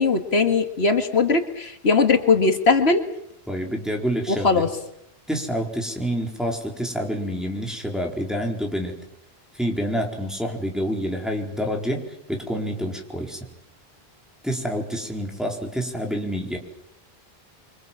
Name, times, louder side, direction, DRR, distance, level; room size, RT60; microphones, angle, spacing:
voice 1, 0.0-3.0 4.3-4.7, left 4 dB, 85° left, 7 dB, 2.1 m, -20 dB
voice 2, 3.5-4.6 5.3-9.0 9.5-12.0 12.3-13.5 14.4-16.6, equal, ahead, 0 dB, 4.3 m, -27 dB
26.5 x 25.0 x 7.5 m, 0.77 s
omnidirectional pair, 1.1 m